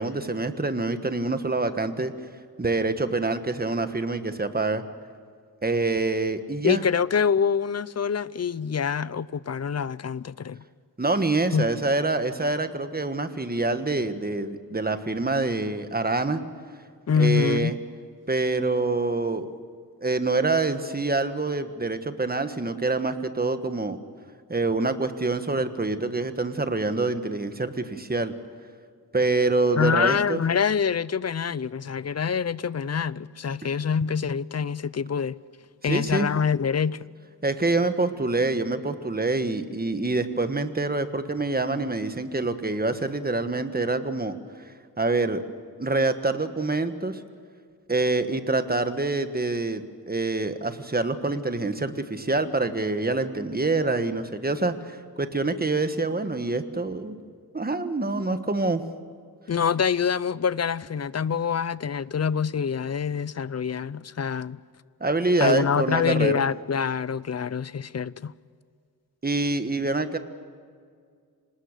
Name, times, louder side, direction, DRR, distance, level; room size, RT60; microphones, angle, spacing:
voice 1, 0.0-2.1 2.6-4.8 5.6-6.8 11.0-16.4 17.2-17.8 18.3-19.5 20.0-24.0 24.5-28.3 29.1-30.4 35.8-36.3 37.4-44.4 44.6-45.4 45.8-47.2 47.9-57.2 57.5-58.8 65.0-66.4 69.2-70.2, right 3 dB, 25° right, 1.4 m, -26 dB
voice 2, 6.6-10.6 11.5-11.7 17.1-17.7 29.8-35.4 35.8-37.0 59.5-64.6 65.4-68.3, left 6 dB, 40° left, 0.5 m, -25 dB
26.5 x 19.5 x 6.7 m
wide cardioid pair, 100°, 40 cm